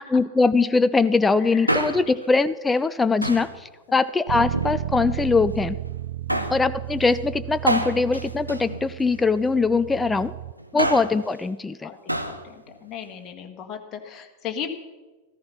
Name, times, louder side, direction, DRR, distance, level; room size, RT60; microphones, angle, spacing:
voice 1, 0.1-3.5 3.9-5.8 6.5-10.3 10.7-11.9, left 4 dB, 10° left, 13 dB, 0.5 m, -21 dB
voice 2, 1.4-1.8 3.9-4.0 6.3-6.5 10.7-10.9 11.8-12.5 12.8-14.7, left 8 dB, 30° left, 3 dB, 1.7 m, -37 dB
Male speech man speaking, 1.5-2.3 3.2-3.6 4.4-5.2 6.3-6.7 7.7-9.3 10.6-11.2 12.1-12.4 12.7-12.8, equal, 90° right, 1.0 m, -27 dB
Bass guitar, 4.3-10.5, right 13 dB, 60° right, 0.4 m, -33 dB
14.0 x 14.0 x 5.8 m, 1.2 s
figure-of-eight pair, 90°, 0 cm